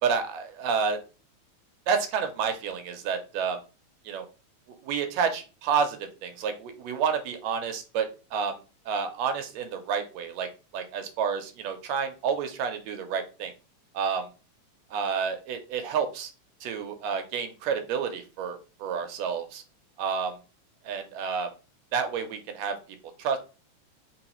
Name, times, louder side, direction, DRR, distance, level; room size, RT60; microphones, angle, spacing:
voice 1, 0.0-1.0 1.9-3.6 4.0-4.2 4.8-8.6 8.9-10.5 10.7-13.5 13.9-14.3 14.9-16.3 16.6-19.6 20.0-20.4 20.8-21.5 21.9-22.8 23.2-23.4, right 6 dB, 75° right, 7 dB, 1.8 m, -29 dB
4.2 x 3.9 x 2.9 m, 0.32 s
omnidirectional pair, 3.4 m